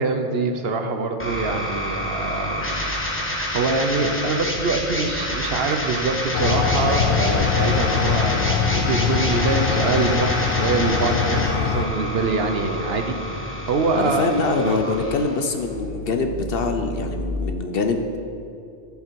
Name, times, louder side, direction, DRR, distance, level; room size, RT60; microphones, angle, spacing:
voice 1, 0.0-2.9 3.2-14.3 14.6-14.8, right 3 dB, 60° right, 5 dB, 0.9 m, -24 dB
sound 1, 1.2-17.2, left 1 dB, 10° left, 1.4 m, -28 dB
sound 2, 6.3-11.8, left 6 dB, 80° left, 1.1 m, -22 dB
voice 2, 14.0-18.3, left 3 dB, 60° left, 6 dB, 0.8 m, -24 dB
14.0 x 5.8 x 4.5 m, 2.6 s
omnidirectional pair, 1.2 m